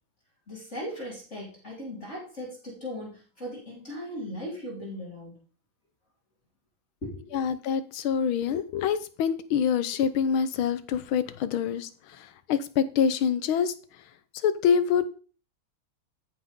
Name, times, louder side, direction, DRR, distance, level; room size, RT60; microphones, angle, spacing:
voice 1, 0.5-5.3 7.0-7.4, equal, 30° left, -4 dB, 3.7 m, -38 dB
voice 2, 7.3-13.7 14.3-15.1, left 7 dB, 75° left, 13 dB, 1.7 m, -26 dB
14.0 x 6.0 x 5.3 m, 0.39 s
omnidirectional pair, 2.3 m